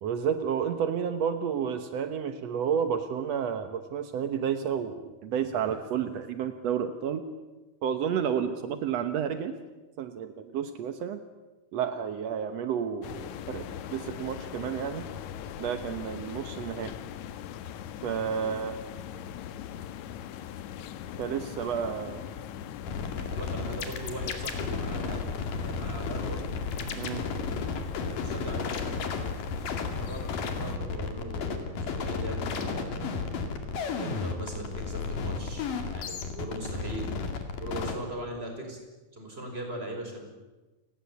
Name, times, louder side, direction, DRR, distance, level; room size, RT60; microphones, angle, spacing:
voice 1, 0.0-7.2 7.8-9.6 10.0-11.2 11.7-15.0 15.6-16.9 18.0-18.8 21.2-22.2 27.0-27.2, right 8 dB, 75° right, 9 dB, 1.5 m, -31 dB
sound 1, 13.0-30.8, left 9 dB, 80° left, 1.7 m, -41 dB
sound 2, 22.9-38.0, left 4 dB, 60° left, 3.7 m, -33 dB
voice 2, 23.3-25.2 25.6-26.4 28.1-28.7 29.9-31.7 31.9-33.1 33.8-37.1 37.6-38.8 39.1-40.2, right 1 dB, 15° right, 3 dB, 5.2 m, -40 dB
29.5 x 19.0 x 8.5 m, 1.2 s
omnidirectional pair, 4.6 m